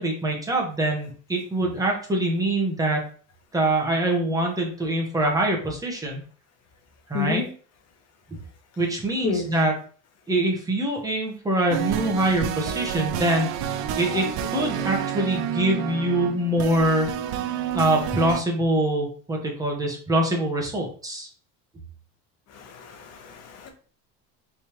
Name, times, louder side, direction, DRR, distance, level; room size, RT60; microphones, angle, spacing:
voice 1, 0.0-3.1 3.5-6.2 7.1-7.4 8.8-9.7 10.3-17.1 17.7-21.3, right 1 dB, 10° right, -1 dB, 1.2 m, -24 dB
voice 2, 7.1-7.5 9.2-9.5 14.6-14.9 22.5-23.7, left 7 dB, 50° left, 5 dB, 1.1 m, -31 dB
sound 1, 11.7-18.4, right 9 dB, 65° right, 0.6 m, -29 dB
4.2 x 3.6 x 3.0 m, 0.42 s
cardioid pair, 140°, 33 cm